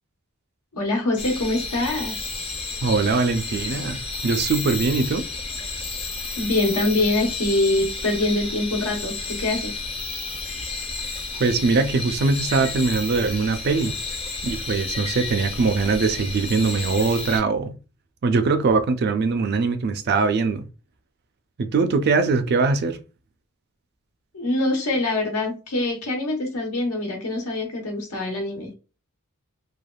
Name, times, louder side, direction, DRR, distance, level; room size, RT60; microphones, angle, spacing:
voice 1, 0.7-2.2 6.4-9.8 24.3-28.7, left 2 dB, 90° left, 1.1 m, -24 dB
sound 1, 1.2-17.4, left 3 dB, 25° left, 0.5 m, -31 dB
voice 2, 2.8-5.2 11.4-14.0 14.4-17.8 18.2-20.6 21.6-23.0, right 4 dB, 45° right, 0.4 m, -22 dB
3.3 x 2.3 x 2.3 m
head